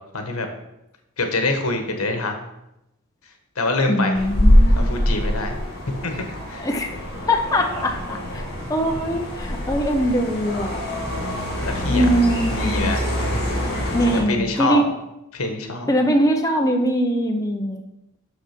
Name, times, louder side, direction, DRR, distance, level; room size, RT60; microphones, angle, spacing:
voice 1, 0.1-0.5 1.2-2.3 3.5-4.2 4.7-5.6 6.0-6.7 11.6-12.1 12.5-13.1 14.1-14.8 15.3-16.0, left 2 dB, 70° left, 5 dB, 1.4 m, -25 dB
voice 2, 3.9-5.0 6.6-6.9 7.3-8.4 8.7-10.8 11.9-12.9 13.9-14.8 15.9-17.8, equal, 15° left, 2 dB, 0.6 m, -22 dB
sound 1, 4.1-14.2, equal, 50° left, 2.9 m, -23 dB
6.4 x 6.2 x 5.9 m, 0.89 s
head